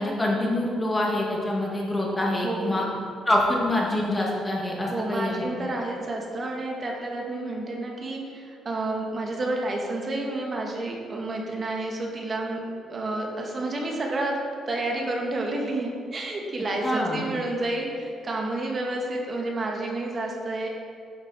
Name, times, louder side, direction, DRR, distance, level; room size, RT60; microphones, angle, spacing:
voice 1, 0.0-2.9 3.3-5.4 16.8-17.2, left 1 dB, 20° left, -3 dB, 2.6 m, -25 dB
voice 2, 2.4-2.9 4.9-14.4 14.7-20.7, right 2 dB, 40° right, 0 dB, 2.1 m, -30 dB
10.5 x 7.6 x 4.5 m, 2.4 s
cardioid pair, 90°, 0 cm